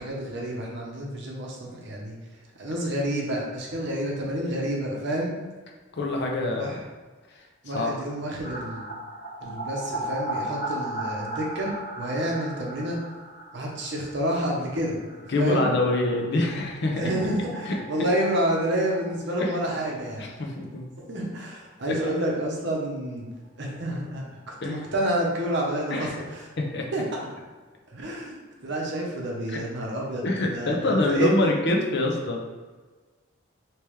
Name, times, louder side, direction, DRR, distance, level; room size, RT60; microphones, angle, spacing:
voice 1, 0.0-2.2 2.6-5.3 6.6-6.8 7.6-8.8 9.4-13.0 13.5-15.0 15.4-15.6 16.9-20.3 21.0-23.3 23.6-26.4 26.9-27.2 27.9-28.4 28.6-30.2 30.5-31.5, right 1 dB, 60° right, -2 dB, 0.8 m, -29 dB
voice 2, 5.9-6.7 7.7-8.2 15.3-17.1 17.7-18.1 19.4-19.5 20.2-20.8 21.9-22.0 24.6-24.8 25.9-26.2 26.6-26.9 29.5-29.6 30.2-32.4, left 2 dB, 55° left, 1 dB, 0.6 m, -25 dB
sound 1, 8.4-20.0 20.3-20.4 20.7-20.8 23.8-23.9 24.1-24.2 24.5-26.2 26.6-26.7, right 1 dB, 35° left, 1.0 m, -37 dB
3.3 x 2.9 x 3.2 m, 1.3 s
head